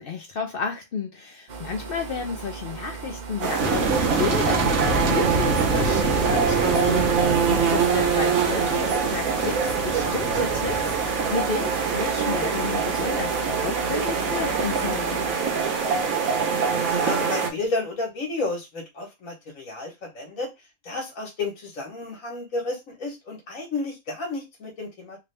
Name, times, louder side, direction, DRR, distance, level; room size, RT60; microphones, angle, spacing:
voice 1, 0.0-15.3, left 5 dB, 60° left, 0.6 m, -32 dB
sound 1, 1.5-15.3, right 5 dB, 45° right, 0.6 m, -38 dB
sound 2, 3.4-17.5, right 6 dB, 85° right, 1.3 m, -24 dB
sound 3, 3.6-11.4 11.7-11.8 12.0-12.1, right 3 dB, 65° right, 1.1 m, -27 dB
voice 2, 16.8-20.5 20.8-25.2, left 3 dB, 75° left, 1.6 m, -32 dB
3.4 x 2.6 x 3.3 m
omnidirectional pair, 1.4 m